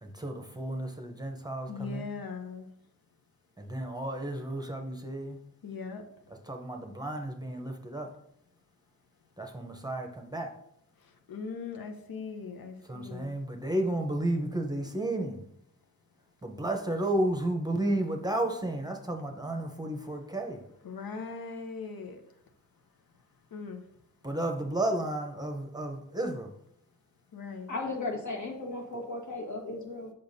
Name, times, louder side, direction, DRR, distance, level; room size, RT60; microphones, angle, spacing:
voice 1, 0.0-2.1 3.6-5.4 6.4-8.1 9.4-10.5 12.8-15.4 16.4-20.6 24.2-26.5, right 1 dB, 10° right, 3 dB, 0.7 m, -32 dB
voice 2, 1.7-2.7 5.6-6.0 11.3-13.3 20.8-22.2 23.5-23.8 27.3-27.7, left 5 dB, 85° left, 5 dB, 0.7 m, -39 dB
voice 3, 27.7-30.1, left 2 dB, 55° left, -1 dB, 1.3 m, -35 dB
6.9 x 5.4 x 2.7 m, 0.75 s
wide cardioid pair, 100°, 34 cm